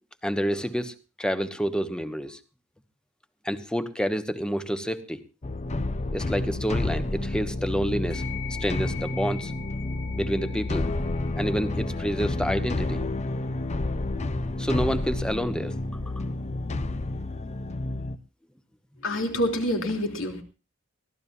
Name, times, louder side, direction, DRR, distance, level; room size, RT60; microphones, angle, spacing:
voice 1, 0.2-2.4 3.4-5.2 6.1-8.2 8.6-9.5 10.2-10.9 11.3-13.0 14.6-15.8, equal, 5° left, 10 dB, 1.1 m, -28 dB
sound 1, 5.4-18.2, left 2 dB, 35° left, 0.7 m, -30 dB
sound 2, 8.1-17.8, left 8 dB, 50° left, 5.1 m, -45 dB
voice 2, 19.0-20.4, left 1 dB, 70° left, 3 dB, 3.3 m, -27 dB
23.5 x 16.0 x 2.7 m, 0.31 s
head